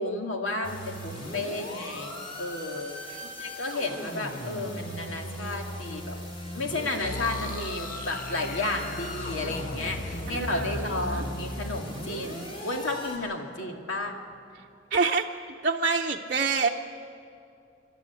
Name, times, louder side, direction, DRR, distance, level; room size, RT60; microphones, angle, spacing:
voice 1, 0.0-6.2 6.5-14.2, left 2 dB, 80° left, 2 dB, 2.2 m, -32 dB
sound 1, 0.6-13.2, equal, 30° left, 4.0 m, -38 dB
sound 2, 7.0-13.8, left 2 dB, 45° left, 0.7 m, -39 dB
voice 2, 10.3-11.3 14.9-15.3 15.6-16.7, right 4 dB, 40° right, -1 dB, 0.7 m, -27 dB
27.0 x 12.0 x 8.3 m, 2.4 s
head